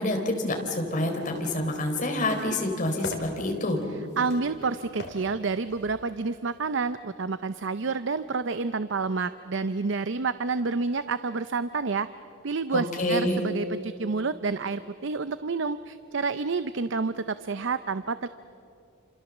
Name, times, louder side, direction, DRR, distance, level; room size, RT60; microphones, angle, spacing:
voice 1, 0.0-3.8 12.7-13.4, left 1 dB, 40° left, 3 dB, 3.8 m, -27 dB
sound 1, 0.8-6.8, left 2 dB, 55° left, 3.4 m, -44 dB
voice 2, 4.2-12.1 12.4-18.3, right 4 dB, 60° right, 13 dB, 0.6 m, -29 dB
28.5 x 27.0 x 7.3 m, 2.6 s
head